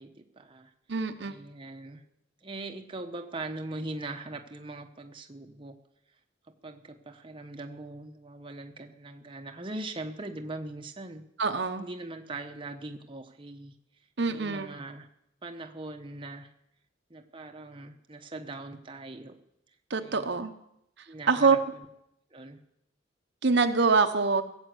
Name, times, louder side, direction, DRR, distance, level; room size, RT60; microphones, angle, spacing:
voice 1, 0.0-0.7 1.2-2.0 2.4-5.8 6.6-11.2 11.8-13.7 14.3-15.1 15.4-16.5 17.1-19.4 20.0-20.4 21.1-21.9 22.3-22.6, right 2 dB, 25° right, 4 dB, 0.9 m, -41 dB
voice 2, 0.9-1.3 11.4-11.9 14.2-14.7 19.9-20.5 21.3-21.6 23.4-24.4, right 4 dB, 60° right, 7 dB, 0.9 m, -24 dB
17.5 x 7.3 x 8.2 m, 0.79 s
head